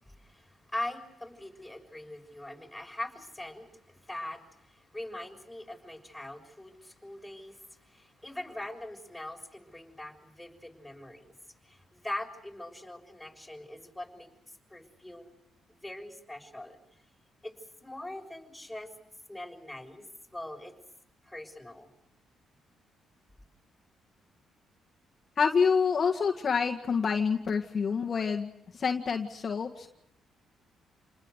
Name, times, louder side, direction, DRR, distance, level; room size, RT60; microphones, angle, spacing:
voice 1, 0.0-11.4 11.6-14.3 14.7-15.3 15.7-16.8 17.4-17.6 17.8-18.9 19.3-20.1 20.3-20.7 21.2-21.9, left 1 dB, ahead, 1 dB, 6.4 m, -42 dB
voice 2, 25.4-29.9, left 6 dB, 45° left, 2 dB, 1.8 m, -27 dB
29.0 x 20.5 x 8.2 m, 0.79 s
cardioid pair, 90°, 0 cm